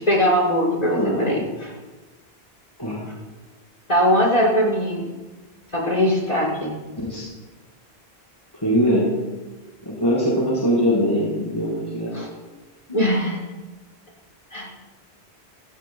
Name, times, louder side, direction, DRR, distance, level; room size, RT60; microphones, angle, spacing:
voice 1, 0.0-1.7 3.9-5.1 5.7-6.7 12.1-12.3 12.9-13.4 14.5-14.7, equal, 40° left, -4 dB, 6.0 m, -21 dB
voice 2, 0.9-1.4 2.8-3.1 7.0-7.3 8.6-9.1 9.8-12.2, equal, 20° left, -6 dB, 4.7 m, -22 dB
30.0 x 16.5 x 2.4 m, 1.2 s
omnidirectional pair, 1.1 m